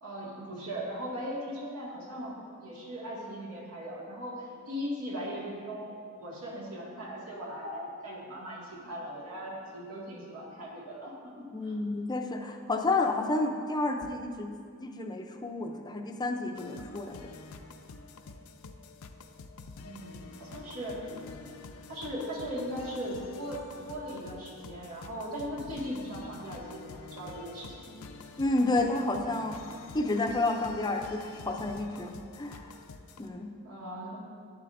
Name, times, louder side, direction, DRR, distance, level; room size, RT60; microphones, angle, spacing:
voice 1, 0.0-2.4 2.6-11.8 19.8-21.0 21.9-28.0 33.6-34.3, equal, 80° right, -5 dB, 2.0 m, -39 dB
voice 2, 11.5-14.5 14.8-17.2 28.4-29.6 29.9-32.7 33.2-33.5, left 2 dB, 20° left, 4 dB, 0.5 m, -30 dB
sound 1, 16.5-33.3, left 3 dB, 80° left, 0.5 m, -47 dB
10.5 x 7.5 x 2.6 m, 2.2 s
head